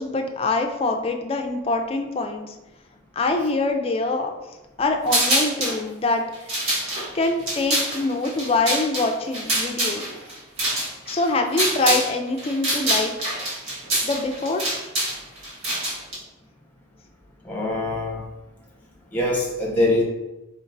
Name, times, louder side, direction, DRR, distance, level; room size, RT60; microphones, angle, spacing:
voice 1, 0.0-2.5 3.2-4.3 4.8-6.5 7.1-10.1 11.1-13.5 14.0-14.7, left 2 dB, 25° left, 4 dB, 0.3 m, -24 dB
sound 1, 5.1-5.8 6.3-12.1 12.4-16.2, right 1 dB, 70° right, 1.5 m, -25 dB
voice 2, 17.4-18.2 19.1-20.0, left 2 dB, 10° left, -3 dB, 0.8 m, -23 dB
4.0 x 3.6 x 2.6 m, 1.0 s
head